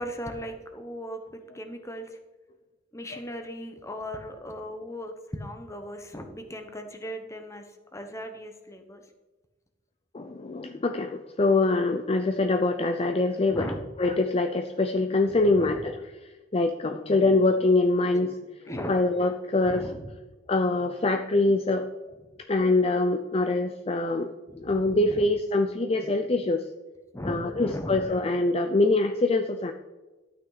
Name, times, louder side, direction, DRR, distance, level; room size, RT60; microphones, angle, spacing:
voice 1, 0.0-2.2 2.9-7.6 7.9-9.0 13.5-13.8 15.3-15.9 18.7-18.9 19.6-20.1 24.5-25.3 27.1-28.1, equal, 15° left, 6 dB, 1.2 m, -37 dB
voice 2, 10.1-13.7 14.0-16.0 16.5-18.3 18.9-19.8 20.5-21.9 22.5-24.3 24.6-26.6 27.2-29.7, left 2 dB, 30° left, 7 dB, 0.5 m, -24 dB
12.5 x 8.7 x 4.1 m, 1.2 s
head